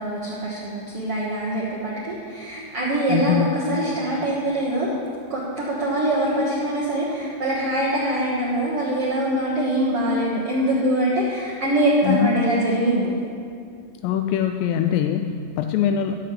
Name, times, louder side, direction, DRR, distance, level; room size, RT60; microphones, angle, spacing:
voice 1, 0.0-5.0 5.3-13.1, right 1 dB, 80° right, -6 dB, 1.2 m, -23 dB
voice 2, 3.1-3.5 12.0-12.4 14.0-16.2, left 9 dB, 85° left, 6 dB, 2.7 m, -22 dB
14.5 x 13.5 x 3.2 m, 2.4 s
omnidirectional pair, 4.9 m